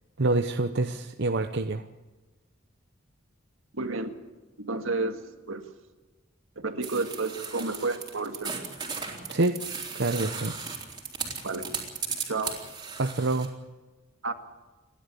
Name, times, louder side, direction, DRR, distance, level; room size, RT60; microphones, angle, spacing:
voice 1, 0.2-1.9 9.3-9.6 9.9-10.5 13.0-13.5, right 2 dB, 55° right, 7 dB, 0.9 m, -26 dB
voice 2, 3.7-4.1 4.6-5.2 5.5-5.6 6.6-8.5 11.4-11.7 12.3-12.5 14.2-14.3, right 3 dB, 80° right, 7 dB, 2.0 m, -30 dB
sound 1, 6.8-13.5, right 5 dB, 20° right, 3.9 m, -36 dB
29.5 x 12.0 x 8.5 m, 1.2 s
head